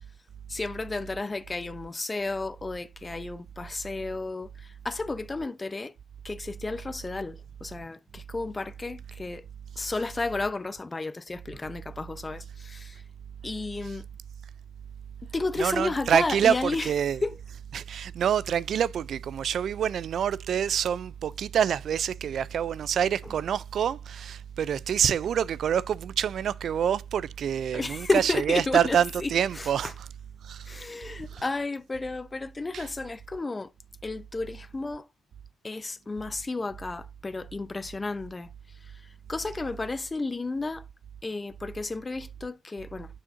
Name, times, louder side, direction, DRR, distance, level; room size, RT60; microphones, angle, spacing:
voice 1, 0.5-5.9 6.2-9.4 9.8-13.0 13.4-14.1 15.3-16.9 17.2-17.4 27.7-29.9 30.7-33.7 34.0-35.1 35.6-38.5 39.3-40.8 41.2-43.2, left 3 dB, 25° left, 0.5 m, -32 dB
voice 2, 15.6-17.2 17.7-30.1 30.4-30.7 31.3-31.4 32.7-32.9, right 8 dB, 65° right, 0.3 m, -26 dB
7.0 x 5.7 x 2.5 m
cardioid pair, 95°, 0 cm